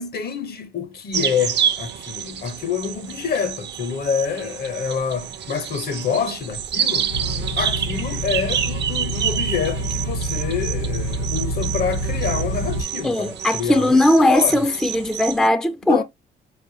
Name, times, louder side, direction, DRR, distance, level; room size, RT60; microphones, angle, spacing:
voice 1, 0.0-7.1 7.6-14.7 15.9-16.0, left 6 dB, 50° left, 0.7 m, -27 dB
sound 1, 1.1-15.5, right 9 dB, 60° right, 0.6 m, -28 dB
sound 2, 7.1-12.8, right 1 dB, 85° left, 1.3 m, -27 dB
voice 2, 13.0-16.0, left 1 dB, 5° left, 0.4 m, -18 dB
4.2 x 3.3 x 2.6 m
cardioid pair, 90°, 20 cm